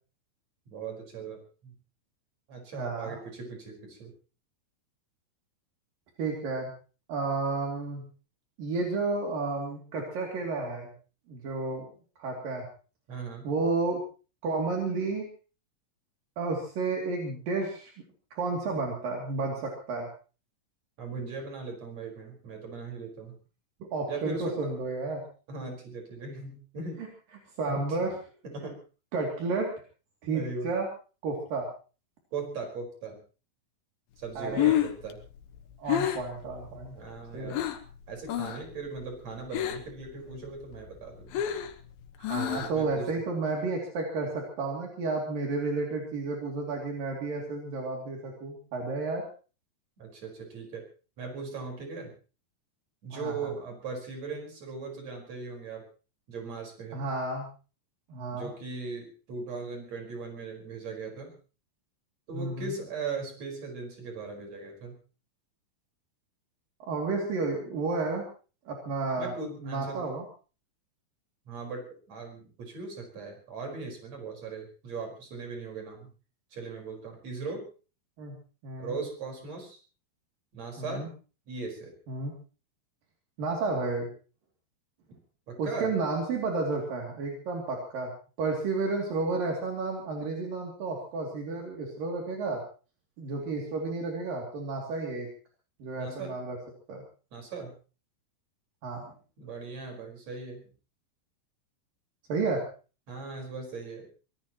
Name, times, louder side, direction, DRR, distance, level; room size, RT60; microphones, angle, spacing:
voice 1, 0.7-1.7 2.5-4.1 13.1-13.5 21.0-23.3 24.1-24.7 25.5-27.0 27.7-28.0 28.4-28.8 30.3-30.7 32.3-33.2 34.2-35.2 36.9-37.6 38.1-41.4 42.3-43.1 50.0-50.8 51.2-52.1 53.0-55.8 56.3-57.1 58.3-61.3 62.3-65.0 69.2-70.0 71.5-76.1 76.5-77.7 78.8-79.8 80.5-81.1 81.5-81.9 85.5-85.9 96.0-96.4 97.3-97.7 99.4-100.7 103.1-104.1, right 4 dB, 50° right, 2 dB, 6.0 m, -39 dB
voice 2, 2.8-3.2 6.2-6.7 7.1-8.0 8.6-10.9 11.3-11.9 12.2-12.7 13.4-14.0 14.4-15.3 16.4-17.9 18.3-20.1 23.9-25.2 27.6-28.1 29.1-29.7 30.2-30.9 31.2-31.7 34.4-34.7 35.8-36.9 37.3-37.6 42.2-49.3 53.1-53.5 56.9-57.5 58.1-58.5 62.3-62.7 66.8-68.2 68.7-69.4 69.6-70.2 78.2-78.4 78.6-78.9 80.8-81.1 82.1-82.3 83.4-84.1 85.6-88.1 88.4-92.6 93.2-95.3 95.8-96.6 96.9-97.0 98.8-99.1 102.3-102.7, right 3 dB, 70° right, 0 dB, 4.5 m, -31 dB
Breathing, 34.3-37.9 38.2-38.7 39.0-40.0 40.3-42.9, left 12 dB, 85° left, 3.1 m, -30 dB
24.0 x 19.0 x 3.0 m, 0.36 s
omnidirectional pair, 4.1 m